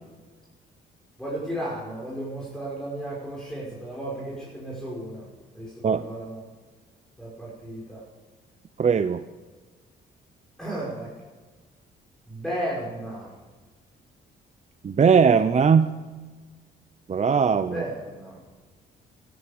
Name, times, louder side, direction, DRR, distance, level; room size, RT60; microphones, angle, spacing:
voice 1, 1.2-5.3 5.5-6.4 7.2-8.0 10.6-11.1 12.3-13.3 17.7-18.4, right 1 dB, 5° left, -6 dB, 6.0 m, -34 dB
voice 2, 8.8-9.2 14.8-15.9 17.1-17.8, right 6 dB, 35° right, 12 dB, 0.7 m, -19 dB
13.5 x 13.5 x 6.9 m, 1.3 s
cardioid pair, 90°, 20 cm